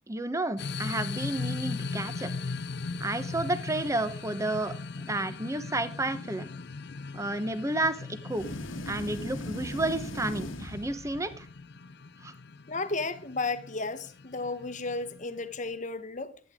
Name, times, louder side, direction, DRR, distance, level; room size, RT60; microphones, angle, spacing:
voice 1, 0.1-2.3 3.0-6.5 7.1-8.5 8.9-11.4 12.2-12.3, right 2 dB, 15° right, 1.0 m, -31 dB
sound 1, 0.6-15.7, left 4 dB, 55° left, 0.6 m, -39 dB
sound 2, 8.3-11.5, left 1 dB, 80° left, 1.5 m, -38 dB
voice 2, 12.7-16.4, left 3 dB, 40° left, 1.1 m, -33 dB
15.0 x 10.5 x 3.6 m
head